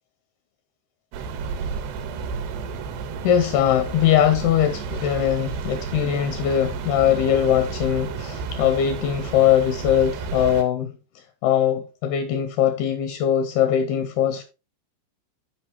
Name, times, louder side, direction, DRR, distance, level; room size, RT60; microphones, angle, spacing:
sound 1, 1.1-10.6, right 5 dB, 75° right, 3.0 m, -32 dB
voice 1, 3.2-10.9 11.4-14.4, left 10 dB, 80° left, 2.3 m, -21 dB
12.0 x 5.1 x 2.9 m
omnidirectional pair, 5.2 m